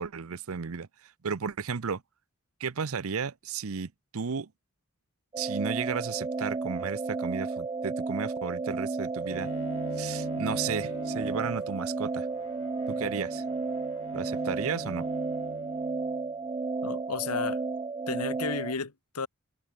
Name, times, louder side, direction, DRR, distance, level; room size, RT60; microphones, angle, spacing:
voice 1, 0.0-2.0 2.6-4.5 5.4-9.5 10.0-12.3 12.9-13.4 14.1-15.1, right 6 dB, 65° right, 0.7 m, -34 dB
sound 1, 5.3-18.7, right 3 dB, 20° right, 0.3 m, -33 dB
Bowed string instrument, 9.3-16.4, left 1 dB, 60° left, 2.8 m, -43 dB
voice 2, 16.8-17.6 18.1-19.3, left 4 dB, 85° left, 1.3 m, -33 dB
head